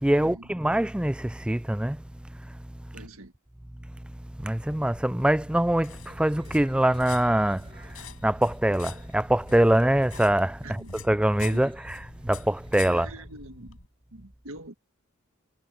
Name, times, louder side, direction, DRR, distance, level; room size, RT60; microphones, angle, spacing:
voice 1, 0.0-2.0 4.4-8.0 8.2-13.1, right 1 dB, 5° right, 0.3 m, -24 dB
voice 2, 2.9-3.3 10.6-10.9 12.9-13.8 14.1-14.7, right 2 dB, 70° right, 1.9 m, -44 dB
sound 1, 4.6-13.9, left 4 dB, 75° left, 4.9 m, -45 dB
sound 2, 6.0-13.2, right 2 dB, 25° right, 7.2 m, -58 dB
head